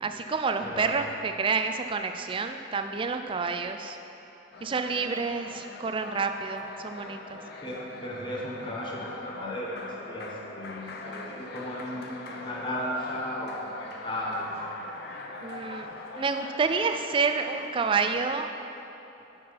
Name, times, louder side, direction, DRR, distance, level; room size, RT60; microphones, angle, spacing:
voice 1, 0.0-4.0 4.6-7.4 15.4-15.9 16.2-18.5, right 4 dB, 25° right, 7 dB, 0.3 m, -29 dB
voice 2, 0.6-1.0 7.6-14.8, equal, 25° left, -3 dB, 1.0 m, -35 dB
sound 1, 4.5-18.2, left 2 dB, 55° left, 0.6 m, -42 dB
9.7 x 4.6 x 4.6 m, 3.0 s
head